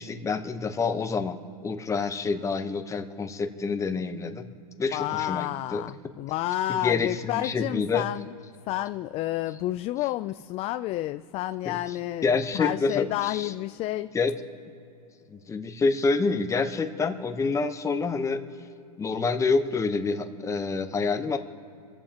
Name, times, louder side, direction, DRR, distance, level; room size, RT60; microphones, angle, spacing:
voice 1, 0.0-4.5 4.8-5.8 6.7-8.1 11.6-11.8 12.2-13.5 14.1-14.3 15.3-18.4 19.0-21.4, left 4 dB, 15° left, 8 dB, 1.0 m, -27 dB
voice 2, 4.9-8.3 8.7-14.1, left 14 dB, 30° left, 11 dB, 0.4 m, -30 dB
26.5 x 14.5 x 3.0 m, 2.6 s
hypercardioid pair, 120°, 20 cm